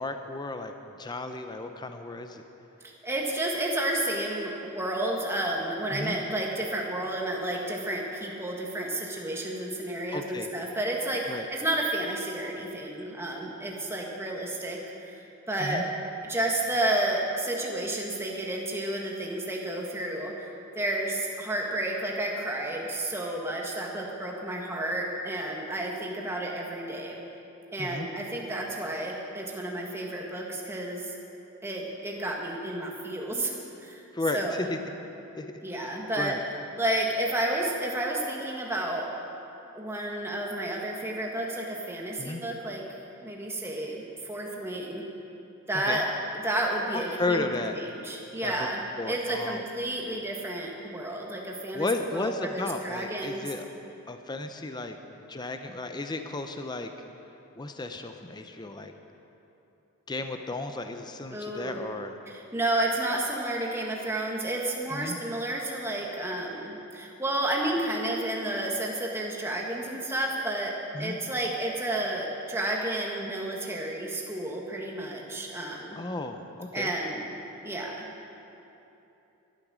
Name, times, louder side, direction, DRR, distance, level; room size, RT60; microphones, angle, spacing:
voice 1, 0.0-2.4 5.9-6.2 10.1-10.5 11.3-11.5 15.6-15.8 27.8-28.1 34.1-34.8 35.4-36.4 42.2-42.4 45.7-46.0 46.9-47.8 48.4-48.5 49.0-49.6 51.7-53.7 54.1-55.0 55.3-56.9 57.6-58.9 60.1-62.1 64.9-65.2 70.9-71.2 76.0-76.9, left 2 dB, 20° left, 7 dB, 0.5 m, -34 dB
voice 2, 3.0-15.8 16.3-20.4 20.7-27.1 27.7-31.1 31.6-33.5 33.8-34.0 34.3-34.7 35.6-36.3 36.8-39.1 39.7-42.8 43.2-45.0 45.7-46.1 46.4-48.8 49.1-53.4 61.3-61.8 62.3-70.7 71.0-76.0 76.7-77.2 77.6-78.1, right 1 dB, 10° right, -1 dB, 1.5 m, -31 dB
12.0 x 12.0 x 6.2 m, 2.9 s
head